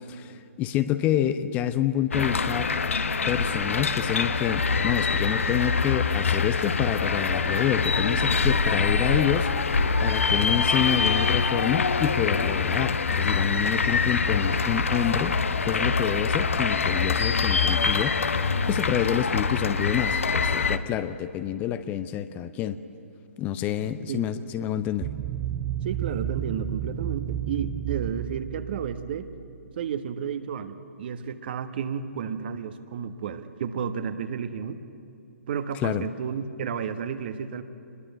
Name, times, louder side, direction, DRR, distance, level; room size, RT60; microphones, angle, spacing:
voice 1, 0.1-2.7 3.3-9.5 10.0-15.4 15.6-22.8 23.4-25.1 35.7-36.1, left 10 dB, 20° left, 12 dB, 0.7 m, -28 dB
sound 1, 2.1-20.8, left 4 dB, 65° left, 1.1 m, -24 dB
voice 2, 23.8-24.3 25.8-29.3 29.8-34.8 35.5-37.6, right 7 dB, 45° right, 10 dB, 1.3 m, -32 dB
sound 2, 25.0-29.7, right 11 dB, 25° right, 0.6 m, -32 dB
27.5 x 21.0 x 8.0 m, 2.6 s
figure-of-eight pair, 125°, 8 cm